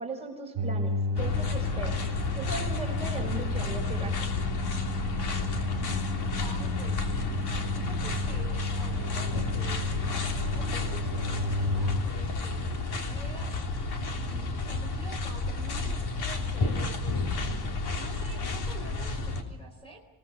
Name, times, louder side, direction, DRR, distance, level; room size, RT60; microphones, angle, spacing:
voice 1, 0.0-2.0 2.3-4.4, right 3 dB, 15° right, 0 dB, 5.5 m, -38 dB
sound 1, 0.6-12.0, left 2 dB, 85° right, 1.4 m, -33 dB
sound 2, 1.2-19.4, left 3 dB, 65° left, 3.5 m, -31 dB
voice 2, 6.4-7.2 7.7-10.1 10.5-13.5 14.1-20.0, right 1 dB, 15° left, 3 dB, 4.3 m, -48 dB
27.0 x 18.5 x 6.8 m, 1.1 s
cardioid pair, 180°, 41 cm